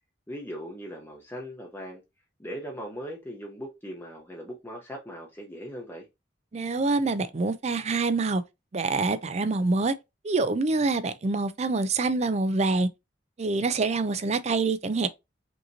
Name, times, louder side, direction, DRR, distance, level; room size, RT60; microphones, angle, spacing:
voice 1, 0.3-2.0 2.4-6.0, equal, 15° left, 0.8 m, -39 dB
voice 2, 6.5-8.4 8.7-9.9 10.2-12.9 13.4-15.1, right 3 dB, 40° right, 0.5 m, -26 dB
5.3 x 2.9 x 2.7 m
head